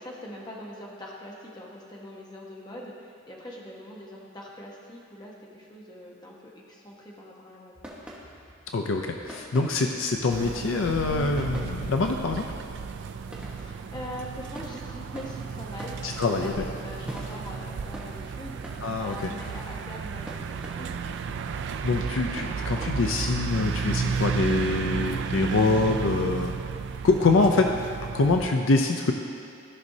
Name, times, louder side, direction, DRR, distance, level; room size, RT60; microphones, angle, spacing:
voice 1, 0.0-7.8 13.6-20.9, left 1 dB, 20° left, -3 dB, 1.1 m, -42 dB
sound 1, 7.7-22.9, equal, 5° right, 1.0 m, -47 dB
voice 2, 8.7-12.5 16.0-16.7 18.8-19.2 21.8-26.6 27.0-27.7 28.1-29.1, left 3 dB, 65° left, 3 dB, 0.5 m, -24 dB
sound 2, 10.3-28.5, right 5 dB, 60° right, 0.3 m, -33 dB
14.5 x 5.3 x 2.7 m, 2.6 s
head